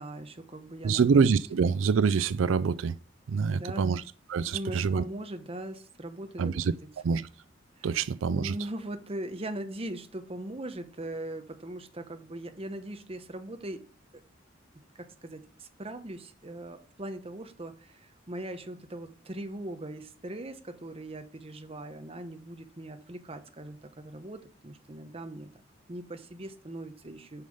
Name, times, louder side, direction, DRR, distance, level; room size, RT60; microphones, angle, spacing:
voice 1, 0.0-1.2 3.4-3.9 4.5-6.5 6.8-7.2 7.8-8.0 8.2-13.8 14.1-14.2 15.0-25.5 25.9-27.4, right 1 dB, 30° right, 0.9 m, -40 dB
voice 2, 0.8-3.0 3.3-4.0 4.3-5.0 6.4-6.7 7.0-7.3 7.8-8.5, right 5 dB, 85° right, 0.4 m, -25 dB
8.2 x 5.5 x 5.4 m
head